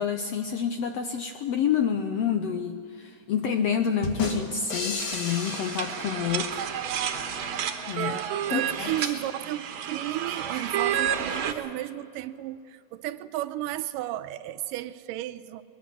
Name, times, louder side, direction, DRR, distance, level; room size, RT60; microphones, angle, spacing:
voice 1, 0.0-6.7 7.0-7.1 7.9-8.2 8.5-8.9, left 7 dB, 80° left, 6 dB, 1.5 m, -28 dB
sound 1, 4.0-6.9, left 3 dB, 45° left, 2.4 m, -33 dB
sound 2, 5.0-11.5, right 9 dB, 65° right, 2.2 m, -31 dB
voice 2, 8.0-15.6, right 14 dB, 90° right, 12 dB, 2.3 m, -34 dB
22.0 x 20.5 x 6.1 m, 2.5 s
omnidirectional pair, 3.8 m